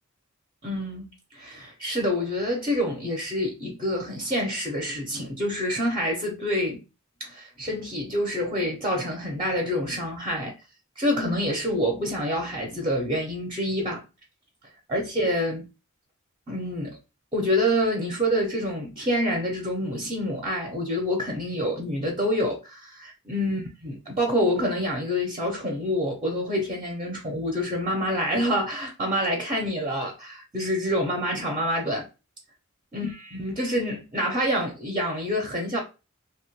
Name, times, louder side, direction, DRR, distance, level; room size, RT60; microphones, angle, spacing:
voice 1, 0.6-6.8 7.2-10.5 11.0-14.0 14.9-15.6 16.5-17.0 17.3-32.1 32.9-35.8, equal, 25° right, 0.6 m, -27 dB
2.9 x 2.1 x 3.0 m
head